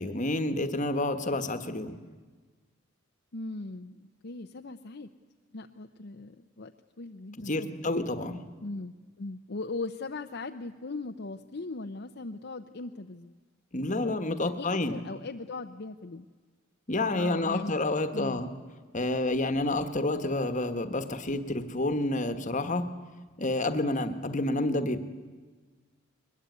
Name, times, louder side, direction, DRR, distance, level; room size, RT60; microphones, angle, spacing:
voice 1, 0.0-2.0 7.5-8.4 13.7-15.0 16.9-18.5 18.9-22.9 23.4-25.0, left 2 dB, 35° left, 9 dB, 1.3 m, -29 dB
voice 2, 3.3-5.1 5.5-6.7 7.0-7.8 8.6-13.4 14.0-16.3 17.1-17.8 18.1-18.4, left 3 dB, 50° left, 5 dB, 0.7 m, -39 dB
21.5 x 21.0 x 9.5 m, 1.4 s
head